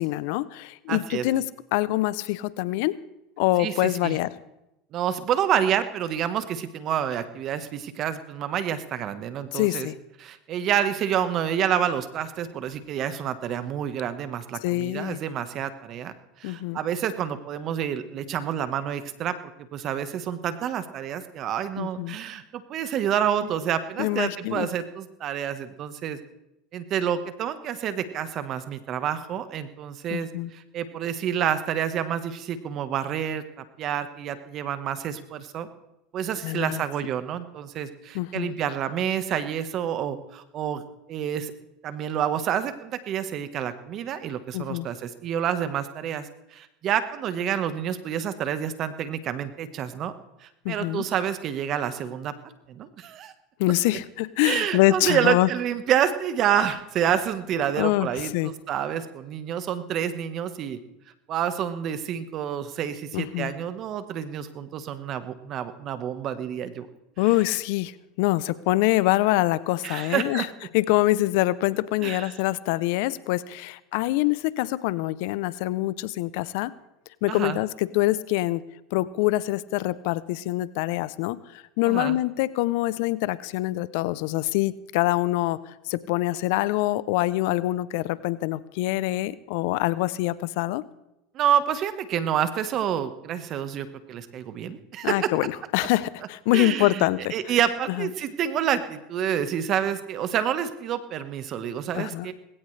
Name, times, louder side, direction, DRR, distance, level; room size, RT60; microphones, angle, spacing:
voice 1, 0.0-1.4 1.7-3.0 3.4-4.3 9.5-10.0 14.6-15.2 16.4-16.8 21.8-22.2 24.0-24.7 30.1-30.5 36.4-36.8 38.1-38.5 44.5-44.9 50.6-51.0 53.6-55.5 57.8-58.5 63.1-63.5 67.2-67.9 68.2-70.5 70.7-76.7 77.2-78.6 78.9-90.8 95.0-97.3 98.0-98.1 101.9-102.3, left 18 dB, 70° left, 18 dB, 0.6 m, -25 dB
voice 2, 0.9-1.3 3.6-4.2 4.9-9.9 10.2-19.3 19.7-26.2 26.7-35.7 36.1-40.8 41.1-41.5 41.8-50.1 50.4-52.3 52.7-53.3 54.4-60.8 61.3-66.9 69.8-70.5 72.0-72.3 77.3-77.6 81.9-82.2 91.3-95.3 96.5-97.0 97.3-102.3, right 9 dB, 45° right, 11 dB, 1.3 m, -28 dB
19.5 x 17.0 x 3.3 m, 0.89 s
hypercardioid pair, 100°, 0 cm